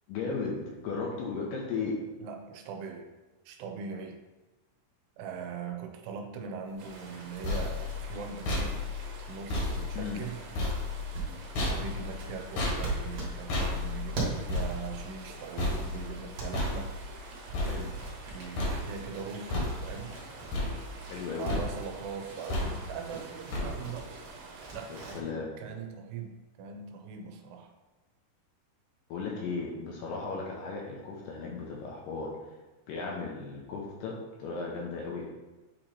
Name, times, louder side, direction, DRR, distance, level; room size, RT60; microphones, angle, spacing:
voice 1, 0.1-2.0 9.9-10.2 17.7-17.9 21.1-21.6 24.9-25.5 29.1-32.6 32.9-35.3, left 4 dB, 80° left, -2 dB, 2.0 m, -36 dB
voice 2, 2.2-3.1 3.5-4.2 5.2-8.8 9.3-10.4 11.6-16.9 18.3-20.2 21.1-24.1 24.7-27.7, right 6 dB, 90° right, 4 dB, 2.7 m, -41 dB
sound 1, 6.8-25.2, right 3 dB, 70° right, 2.5 m, -48 dB
sound 2, 7.1-18.3 18.6-19.2 19.5-20.2 20.5-21.2 21.5-22.0 22.5-23.0 23.5-24.1, left 2 dB, 60° left, 2.0 m, -34 dB
sound 3, 9.8-16.9 17.2-25.1, right 3 dB, 50° right, 1.8 m, -42 dB
8.6 x 3.0 x 4.1 m, 1.1 s
omnidirectional pair, 4.7 m